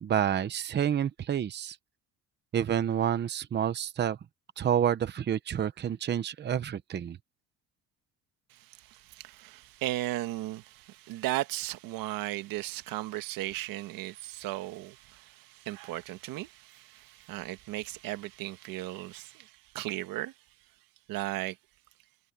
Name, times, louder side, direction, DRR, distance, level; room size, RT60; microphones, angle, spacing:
voice 1, 0.0-1.8 2.5-4.2 4.6-7.2, right 9 dB, 30° right, 0.9 m, -29 dB
voice 2, 8.5-20.3 21.1-21.6, right 16 dB, 85° right, 1.6 m, -36 dB
cardioid pair, 145°, 33 cm